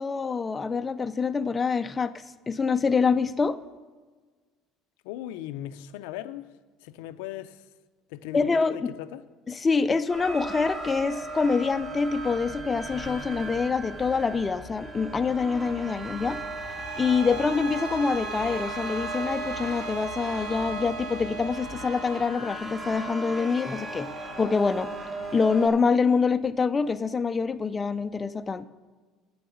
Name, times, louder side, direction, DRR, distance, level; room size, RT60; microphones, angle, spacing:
voice 1, 0.0-2.1 2.5-3.6 8.3-8.9 9.5-16.4 17.0-24.1 24.4-24.9 25.3-28.7, left 5 dB, 20° left, 0.4 m, -25 dB
voice 2, 5.0-6.5 6.8-7.7 8.1-9.3, left 13 dB, 90° left, 0.5 m, -38 dB
sound 1, 10.1-25.7, right 2 dB, 30° right, 1.9 m, -37 dB
sound 2, 12.0-21.8, left 1 dB, 60° right, 3.7 m, -48 dB
Bowed string instrument, 16.8-22.4, right 5 dB, 75° right, 0.7 m, -40 dB
8.7 x 7.1 x 6.9 m
cardioid pair, 115°, 0 cm